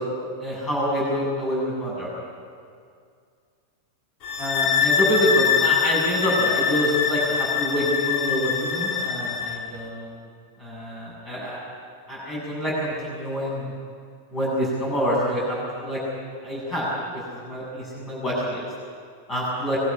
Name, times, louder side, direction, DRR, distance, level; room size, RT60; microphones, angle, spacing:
voice 1, 0.4-2.1 4.4-10.3 10.6-11.6 12.1-13.7 14.3-16.0 16.4-16.9 17.1-18.7 19.3-19.8, equal, 20° left, -5 dB, 7.7 m, -26 dB
sound 1, 4.2-9.6, left 7 dB, 40° left, 2.7 m, -24 dB
22.0 x 12.5 x 9.9 m, 2.2 s
figure-of-eight pair, 90°, 0 cm